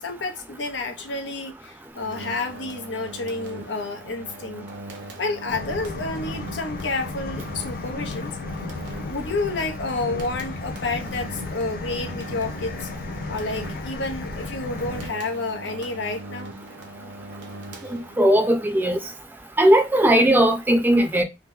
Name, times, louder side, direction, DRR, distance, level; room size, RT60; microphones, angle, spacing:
voice 1, 0.0-4.7 5.2-8.4 9.0-12.9 13.3-16.5, left 3 dB, 85° left, 0.7 m, -30 dB
sound 1, 2.0-18.4, right 2 dB, 75° right, 0.8 m, -40 dB
sound 2, 5.5-15.1, left 3 dB, 55° left, 0.4 m, -34 dB
voice 2, 17.9-19.0 19.6-21.2, right 1 dB, 10° right, 0.5 m, -18 dB
2.8 x 2.1 x 3.5 m
head